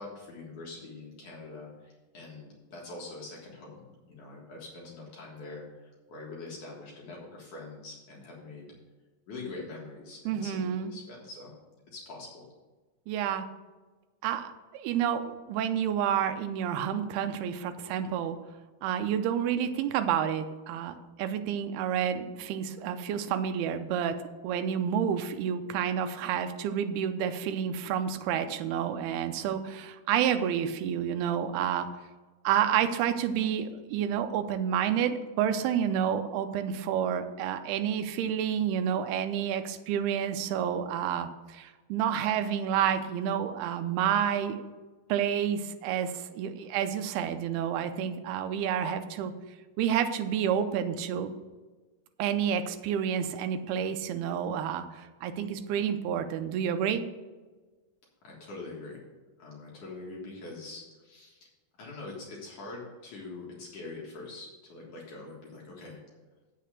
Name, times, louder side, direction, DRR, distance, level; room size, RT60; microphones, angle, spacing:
voice 1, 0.0-8.7 9.3-11.5 11.9-12.5 58.2-59.0 59.4-61.5 61.8-66.0, left 3 dB, 55° left, -3 dB, 2.7 m, -44 dB
voice 2, 10.3-10.9 13.1-13.5 14.2-18.4 18.8-24.2 24.4-31.9 32.4-44.6 45.1-49.3 49.8-51.3 52.2-57.0, right 9 dB, 80° right, 8 dB, 2.4 m, -29 dB
8.4 x 6.7 x 6.4 m, 1.3 s
omnidirectional pair, 4.9 m